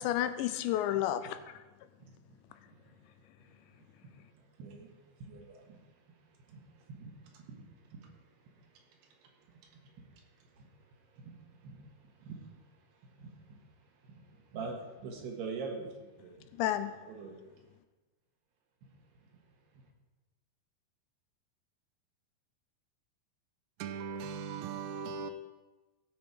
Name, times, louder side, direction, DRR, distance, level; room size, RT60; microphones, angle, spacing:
voice 1, 0.0-1.6 16.5-17.1, left 12 dB, 85° left, 2.7 m, -31 dB
voice 2, 3.4-3.8 4.3-5.9 6.4-12.7 13.0-13.7 14.0-16.5 17.1-17.4, right 4 dB, 70° right, 3.3 m, -46 dB
voice 3, 23.8-25.3, right 6 dB, 90° right, 2.1 m, -38 dB
16.5 x 6.2 x 4.8 m
omnidirectional pair, 5.3 m